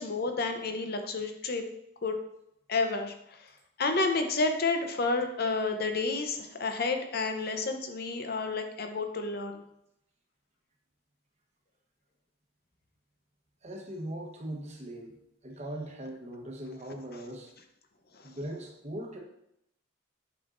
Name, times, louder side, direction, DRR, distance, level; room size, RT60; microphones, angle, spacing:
voice 1, 0.0-1.6 2.0-2.2 2.7-3.4 3.8-9.6 18.2-18.3, left 3 dB, 50° left, 5 dB, 0.7 m, -30 dB
voice 2, 13.6-15.2 15.4-17.5 18.2-19.2, right 1 dB, 35° right, 1 dB, 1.1 m, -40 dB
7.7 x 5.3 x 2.6 m, 0.79 s
head